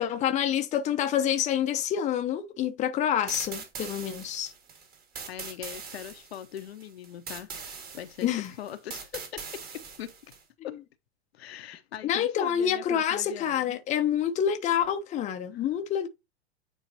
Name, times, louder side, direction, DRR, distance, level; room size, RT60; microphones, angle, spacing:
voice 1, 0.0-4.5 8.2-8.5 12.0-16.1, left 9 dB, 20° left, 0.8 m, -27 dB
sound 1, 3.3-10.4, right 5 dB, 25° right, 2.0 m, -41 dB
voice 2, 5.3-10.3 10.6-10.8 11.3-13.8 15.5-15.6, left 11 dB, 60° left, 0.9 m, -41 dB
9.3 x 4.0 x 2.8 m
figure-of-eight pair, 95°, 35 cm